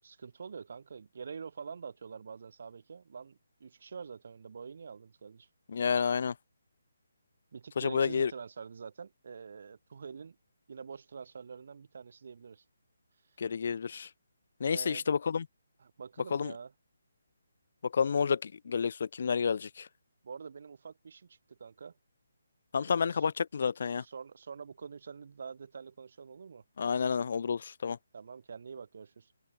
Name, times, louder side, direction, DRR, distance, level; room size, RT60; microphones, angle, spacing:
voice 1, 0.0-5.5 7.5-10.4 10.7-12.6 14.7-15.1 15.8-16.7 20.2-21.9 22.8-23.3 23.8-26.6 28.1-29.3, right 6 dB, 55° right, 4.5 m, -46 dB
voice 2, 5.7-6.3 7.8-8.3 13.4-14.1 14.6-15.4 16.3-16.5 17.9-19.9 22.7-24.0 26.8-28.0, left 6 dB, 55° left, 0.4 m, -30 dB
figure-of-eight pair, 155°, 0 cm